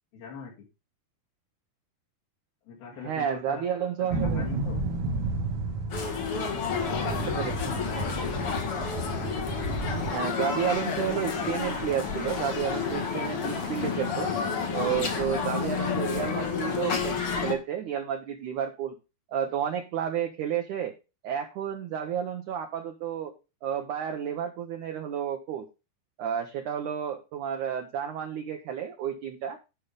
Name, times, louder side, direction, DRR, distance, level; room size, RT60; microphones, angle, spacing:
voice 1, 0.1-0.7 2.7-3.6 4.0-4.8 6.2-8.4, left 6 dB, 70° left, -6 dB, 4.2 m, -44 dB
voice 2, 3.0-4.4 7.1-7.8 10.1-14.3 14.7-19.0 19.3-20.9 21.2-23.3 23.6-25.7 26.2-29.6, right 9 dB, 75° right, 4 dB, 1.9 m, -31 dB
sound 1, 4.1-10.1, right 2 dB, 50° right, 1.7 m, -32 dB
sound 2, 5.9-17.5, left 6 dB, 50° left, 1.8 m, -30 dB
sound 3, 7.5-15.2, right 1 dB, 10° left, 1.6 m, -45 dB
10.0 x 5.7 x 5.1 m, 0.29 s
omnidirectional pair, 4.6 m